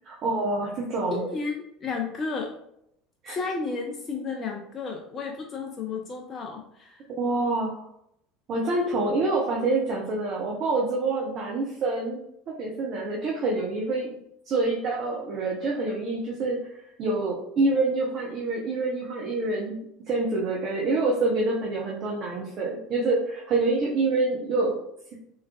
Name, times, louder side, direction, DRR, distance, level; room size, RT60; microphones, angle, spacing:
voice 1, 0.1-1.2 3.2-3.4 7.1-7.9 8.5-12.2 12.5-14.1 14.5-16.6 17.0-19.8 20.1-24.8, right 2 dB, 45° right, -2 dB, 0.6 m, -26 dB
voice 2, 1.1-2.5 3.3-7.0, left 4 dB, 30° left, 0 dB, 0.5 m, -32 dB
3.3 x 3.1 x 2.3 m, 0.75 s
figure-of-eight pair, 70°, 0 cm